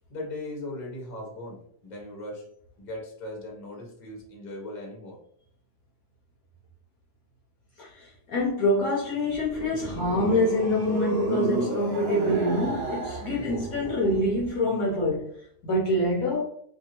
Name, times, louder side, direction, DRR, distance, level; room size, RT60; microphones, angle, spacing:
voice 1, 0.1-2.4 2.8-5.2, left 1 dB, 35° left, -2 dB, 0.8 m, -38 dB
voice 2, 7.8-15.3 15.6-16.4, left 1 dB, 65° left, -3 dB, 1.0 m, -26 dB
sound 1, 9.2-14.5, right 2 dB, 45° right, 0.9 m, -32 dB
2.7 x 2.7 x 2.8 m, 0.67 s
omnidirectional pair, 1.8 m